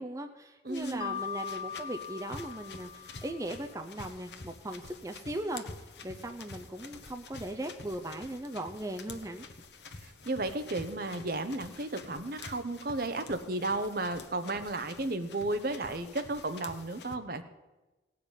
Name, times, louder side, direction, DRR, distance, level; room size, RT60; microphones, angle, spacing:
voice 1, 0.0-5.6 6.0-9.5, right 1 dB, 15° right, 4 dB, 0.6 m, -38 dB
voice 2, 0.6-1.2 10.0-17.4, right 2 dB, 50° right, 9 dB, 0.9 m, -34 dB
sound 1, 0.7-17.2, left 3 dB, 70° left, 1.0 m, -48 dB
Mallet percussion, 1.0-3.8, left 8 dB, 30° left, 0.3 m, -40 dB
17.0 x 5.9 x 9.1 m, 1.1 s
head